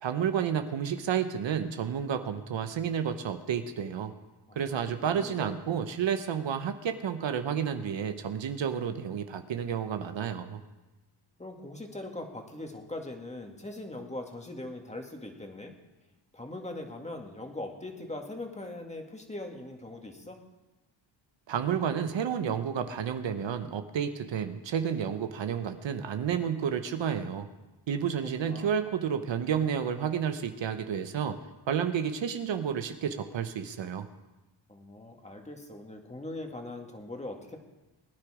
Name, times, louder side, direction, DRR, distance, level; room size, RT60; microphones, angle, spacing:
voice 1, 0.0-4.1 4.6-10.6 21.5-27.5 27.9-31.4 31.7-34.1, right 8 dB, 65° right, 9 dB, 1.0 m, -31 dB
voice 2, 5.1-5.6 11.4-15.7 16.3-20.4 28.4-28.8 34.7-37.6, left 2 dB, 15° left, 2 dB, 2.1 m, -41 dB
20.0 x 10.0 x 5.0 m, 1.1 s
cardioid pair, 110°, 48 cm